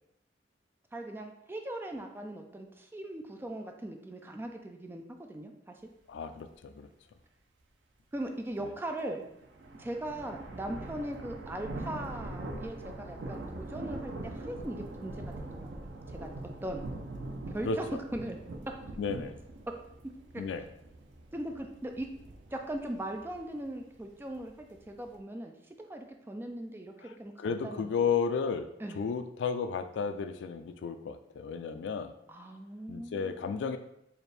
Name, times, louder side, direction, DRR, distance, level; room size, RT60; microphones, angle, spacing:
voice 1, 0.9-5.5 8.1-9.2 9.8-15.3 15.6-16.3 16.6-16.9 17.5-17.9 18.1-18.4 18.7-18.8 19.7-19.8 20.3-20.4 21.3-22.1 22.5-27.9 28.8-29.0 32.3-33.8, right 1 dB, 10° right, 4 dB, 0.3 m, -39 dB
voice 2, 6.1-6.9 17.6-18.0 19.0-19.3 20.4-20.7 27.4-28.7 28.9-32.1 32.9-33.8, left 5 dB, 80° left, 9 dB, 0.3 m, -33 dB
sound 1, 9.2-25.2, right 2 dB, 85° right, 0.5 m, -43 dB
4.3 x 2.5 x 3.3 m, 0.79 s
head